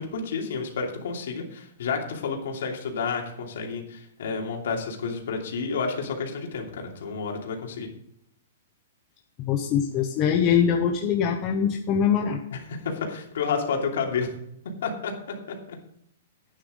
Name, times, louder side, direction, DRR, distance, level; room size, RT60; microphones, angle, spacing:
voice 1, 0.0-7.9 12.7-14.3 14.8-15.8, left 5 dB, 55° left, 1 dB, 2.9 m, -30 dB
voice 2, 9.4-12.4, left 8 dB, 20° left, 2 dB, 0.7 m, -23 dB
11.5 x 9.6 x 3.8 m, 0.74 s
hypercardioid pair, 180°, 0 cm